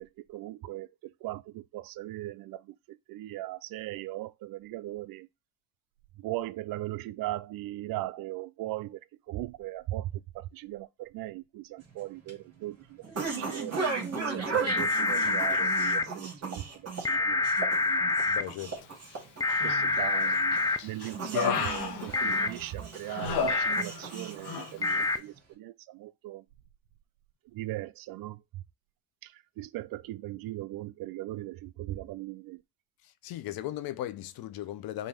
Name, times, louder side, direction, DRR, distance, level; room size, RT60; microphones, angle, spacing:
voice 1, 0.0-5.3 6.2-13.9 14.3-17.5 17.8-18.1 19.6-26.4 27.5-28.6 29.2-32.6, right 16 dB, 65° right, 0.5 m, -39 dB
sound 1, 11.8-25.4, right 4 dB, 40° right, 2.4 m, -37 dB
sound 2, 14.7-16.0 17.0-18.4 19.4-20.8 22.1-22.5 23.5-23.8 24.8-25.2, left 3 dB, 10° left, 0.4 m, -26 dB
voice 2, 18.3-18.8 33.2-35.1, left 13 dB, 70° left, 0.7 m, -37 dB
Human voice, 19.5-20.1 20.5-22.7 23.1-24.2 24.4-24.7, left 6 dB, 90° left, 1.3 m, -32 dB
5.5 x 2.7 x 3.4 m
cardioid pair, 90°, 37 cm